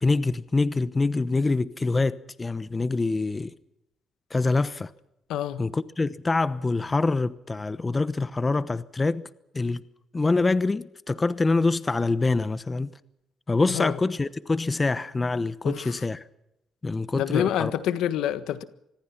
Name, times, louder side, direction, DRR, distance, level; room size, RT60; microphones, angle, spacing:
voice 1, 0.0-3.5 4.3-4.9 5.6-9.3 9.5-9.8 10.1-12.9 13.5-16.2 16.8-17.7, left 3 dB, 25° left, 1.0 m, -25 dB
voice 2, 5.3-5.6 13.6-14.0 15.6-16.0 17.1-18.6, left 11 dB, 85° left, 1.5 m, -27 dB
25.5 x 20.5 x 6.0 m
cardioid pair, 90°, 0 cm